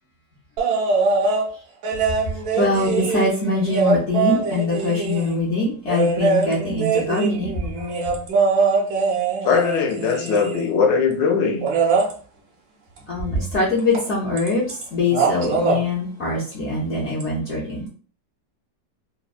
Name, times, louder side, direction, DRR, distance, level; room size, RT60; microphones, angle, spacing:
sound 1, 0.6-1.5 1.8-5.4 5.9-10.7 11.6-12.1 13.9-14.1 14.4-14.8 15.1-15.8 17.2-17.3, right 4 dB, 70° right, 1.0 m, -22 dB
voice 1, 2.3-7.9 13.1-17.9, left 2 dB, 60° left, 0.7 m, -23 dB
voice 2, 9.4-11.7, left 5 dB, 85° left, 1.3 m, -20 dB
3.3 x 2.0 x 2.3 m
omnidirectional pair, 1.9 m